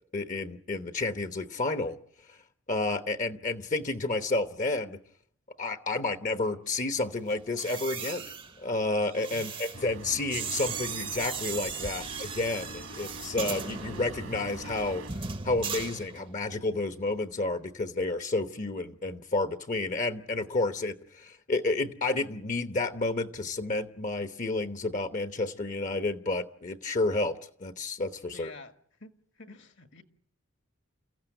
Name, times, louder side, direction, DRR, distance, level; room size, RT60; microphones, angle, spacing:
voice 1, 0.1-2.0 2.7-5.0 5.6-8.2 8.6-15.0 15.4-28.5, left 2 dB, 35° left, 1.0 m, -30 dB
sound 1, 7.5-16.6 16.8-17.2, right 5 dB, 25° right, 0.9 m, -38 dB
sound 2, 9.7-15.1, right 2 dB, 70° right, 1.9 m, -44 dB
voice 2, 28.3-28.7 29.0-30.0, left 3 dB, 60° left, 1.8 m, -49 dB
29.0 x 15.5 x 9.1 m
head